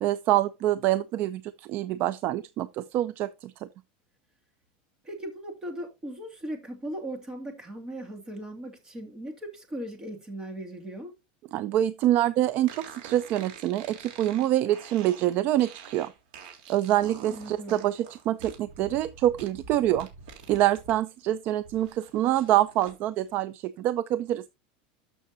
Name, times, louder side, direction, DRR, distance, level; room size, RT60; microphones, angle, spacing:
voice 1, 0.0-3.7 11.5-16.1 16.7-20.1 20.5-24.4, right 13 dB, 40° right, 0.4 m, -26 dB
voice 2, 5.0-11.1 17.3-17.8, right 1 dB, 15° right, 2.5 m, -38 dB
sound 1, 12.7-21.0 21.3-23.0, right 6 dB, 65° right, 3.3 m, -47 dB
13.0 x 6.4 x 2.7 m
supercardioid pair, 155°, 5 cm